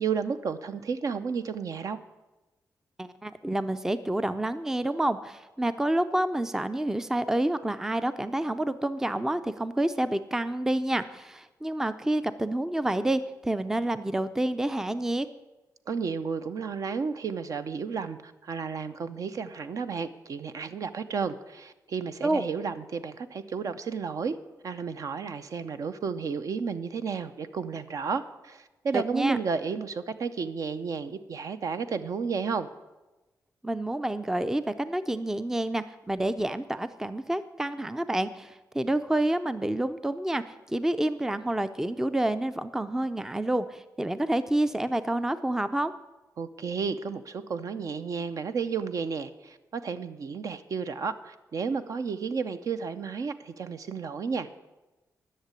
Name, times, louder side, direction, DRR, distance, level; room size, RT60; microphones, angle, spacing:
voice 1, 0.0-2.0 15.9-24.4 24.6-32.7 46.4-54.6, right 5 dB, 60° right, 11 dB, 0.7 m, -32 dB
voice 2, 3.0-15.3 22.2-22.4 28.9-29.4 33.6-45.9, right 1 dB, 5° right, 12 dB, 0.4 m, -28 dB
11.0 x 6.6 x 8.3 m, 1.1 s
cardioid pair, 105°, 7 cm